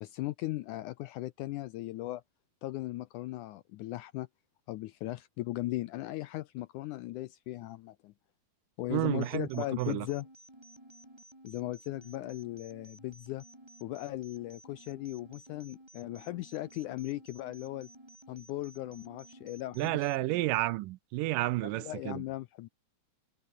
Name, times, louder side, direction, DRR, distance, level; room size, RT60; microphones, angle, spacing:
voice 1, 0.0-2.2 2.6-4.3 4.7-8.1 8.8-10.3 11.4-13.4 13.8-17.9 18.3-20.4 21.6-22.7, left 16 dB, 80° left, 1.8 m, -38 dB
voice 2, 8.9-10.1 19.8-22.2, right 18 dB, 80° right, 2.1 m, -31 dB
sound 1, 9.2-20.2, right 1 dB, 5° right, 3.4 m, -55 dB
omnidirectional pair, 4.1 m